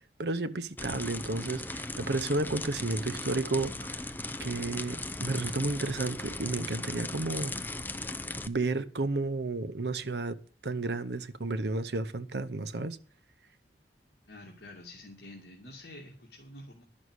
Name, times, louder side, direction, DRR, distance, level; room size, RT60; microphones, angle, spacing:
voice 1, 0.2-4.1 4.4-7.5 8.5-13.0, right 2 dB, 70° right, 0.8 m, -32 dB
sound 1, 0.8-8.5, left 2 dB, 10° left, 0.5 m, -37 dB
voice 2, 14.2-16.8, left 1 dB, 60° left, 2.5 m, -48 dB
11.0 x 6.3 x 8.1 m
head